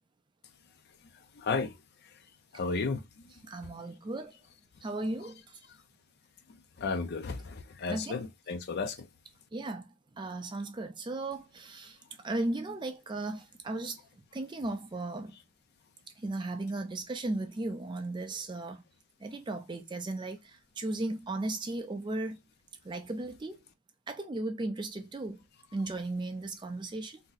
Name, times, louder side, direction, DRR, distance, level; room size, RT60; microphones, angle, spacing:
voice 1, 1.3-1.8 2.5-3.3 6.8-9.1, left 4 dB, 50° left, 0.4 m, -33 dB
voice 2, 3.4-4.3 4.8-5.4 7.9-8.2 9.5-9.9 10.2-12.0 12.2-14.0 14.3-15.4 16.2-18.8 19.2-22.4 22.8-23.6 24.1-25.4 25.7-27.2, right 2 dB, 20° right, 0.4 m, -36 dB
2.7 x 2.0 x 3.8 m
head